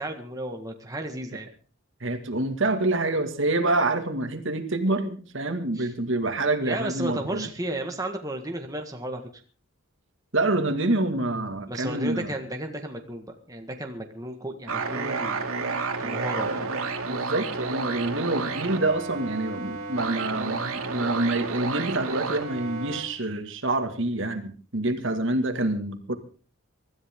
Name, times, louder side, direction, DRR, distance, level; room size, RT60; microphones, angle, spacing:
voice 1, 0.0-1.5 5.7-5.9 6.6-9.2 11.7-15.5 16.0-16.8, right 1 dB, 15° right, 3 dB, 1.6 m, -34 dB
voice 2, 2.0-7.5 10.3-12.3 17.1-26.2, right 2 dB, 60° right, 6 dB, 2.1 m, -27 dB
sound 1, 14.7-23.0, right 4 dB, 80° right, 2.5 m, -31 dB
24.5 x 13.0 x 3.7 m, 0.39 s
head